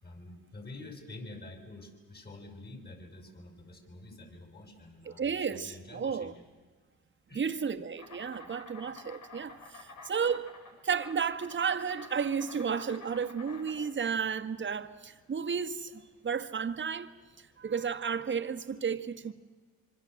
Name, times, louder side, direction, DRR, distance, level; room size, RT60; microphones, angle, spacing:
voice 1, 0.0-6.5 7.3-7.5 9.6-10.3 19.2-19.3, left 2 dB, 30° left, 6.3 m, -48 dB
voice 2, 5.0-6.3 7.3-10.5 10.8-17.1 17.4-19.3, right 6 dB, 40° right, 1.6 m, -33 dB
Insect, 8.0-18.0, left 4 dB, 75° left, 5.3 m, -50 dB
25.5 x 24.5 x 7.8 m
cardioid pair, 90°, 30 cm